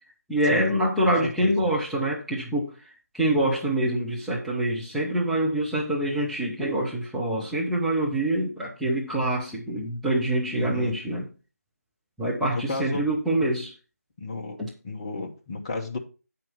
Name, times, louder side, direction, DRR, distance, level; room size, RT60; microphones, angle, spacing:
voice 1, 0.3-2.8 3.1-11.2 12.2-13.7 14.6-14.7, right 1 dB, ahead, 0.3 m, -25 dB
voice 2, 1.0-1.7 10.5-10.9 12.5-13.0 14.2-14.6 14.8-16.0, left 3 dB, 20° left, 1.0 m, -33 dB
8.8 x 5.8 x 4.3 m
figure-of-eight pair, 160°, 9 cm